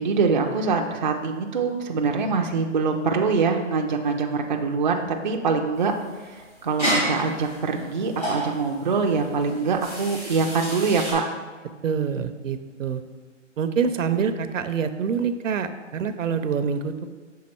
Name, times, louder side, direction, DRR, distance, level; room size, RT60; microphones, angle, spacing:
voice 1, 0.0-5.9 6.2-11.2, right 4 dB, 40° right, 3 dB, 0.4 m, -24 dB
sound 1, 5.7-11.1, equal, 10° left, 0.9 m, -31 dB
voice 2, 11.8-13.0 13.6-17.1, right 6 dB, 80° right, 10 dB, 0.6 m, -26 dB
6.4 x 3.8 x 4.3 m, 1.4 s
hypercardioid pair, 160°, 38 cm